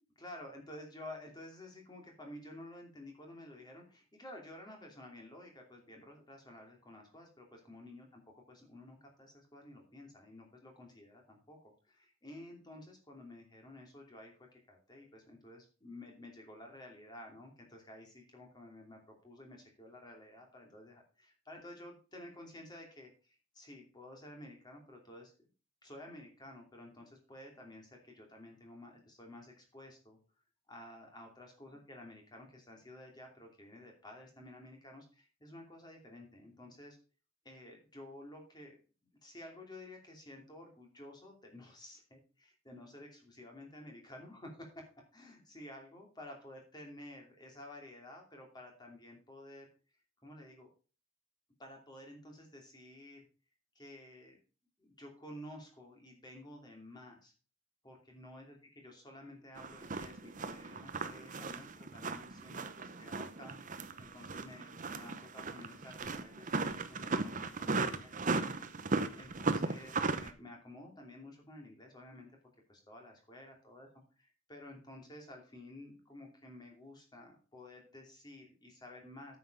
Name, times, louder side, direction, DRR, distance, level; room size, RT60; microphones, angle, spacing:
voice 1, 0.2-8.2 8.5-25.3 25.8-30.2 30.7-37.0 37.4-38.8 39.2-49.7 50.2-50.7 51.6-53.2 53.7-54.4 54.8-57.3 57.8-68.1 68.4-72.3 72.7-73.9 74.5-79.4, left 1 dB, 20° left, 1 dB, 2.8 m, -52 dB
sound 1, 59.6-70.3, right 3 dB, 35° right, 0.8 m, -36 dB
9.3 x 7.2 x 5.3 m, 0.36 s
head